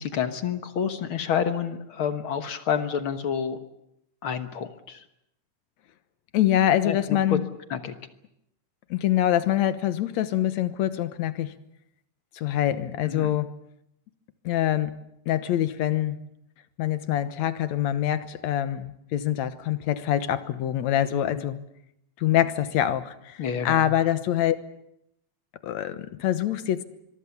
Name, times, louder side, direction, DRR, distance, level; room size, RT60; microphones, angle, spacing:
voice 1, 0.0-3.6 4.2-5.1 6.8-7.4 7.7-7.9 13.0-13.4 21.4-21.5 23.4-23.9, left 7 dB, 55° left, 9 dB, 1.8 m, -29 dB
voice 2, 6.3-7.4 8.9-11.5 12.4-13.5 14.5-15.0 15.3-16.2 16.8-21.6 22.2-23.4 23.6-24.6 25.6-26.8, left 12 dB, 70° left, 12 dB, 2.3 m, -25 dB
24.5 x 23.0 x 7.1 m, 0.79 s
omnidirectional pair, 3.4 m